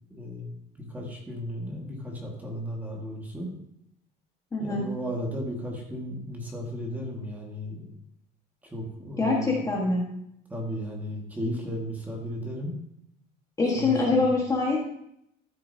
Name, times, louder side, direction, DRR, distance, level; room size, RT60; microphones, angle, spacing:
voice 1, 0.1-0.6 0.9-3.5 4.6-7.9 8.7-9.8 10.5-12.7 13.6-14.3, equal, 10° right, -1 dB, 1.7 m, -35 dB
voice 2, 4.5-4.9 9.2-10.0 13.6-14.8, left 3 dB, 15° left, -2 dB, 1.4 m, -24 dB
13.0 x 6.9 x 2.7 m, 0.76 s
cardioid pair, 165°, 19 cm